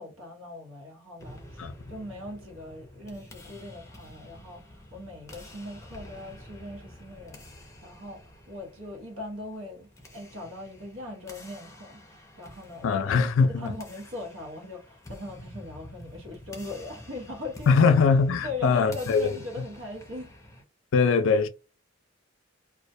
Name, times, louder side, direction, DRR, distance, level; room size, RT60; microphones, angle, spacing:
voice 1, 0.0-13.0 13.5-17.9 18.4-20.3, left 2 dB, 85° right, 1.0 m, -40 dB
sound 1, 1.2-20.6, left 1 dB, 15° left, 0.5 m, -48 dB
voice 2, 12.8-13.7 17.7-19.4 20.9-21.5, left 5 dB, 70° left, 0.4 m, -21 dB
2.3 x 2.1 x 2.6 m
head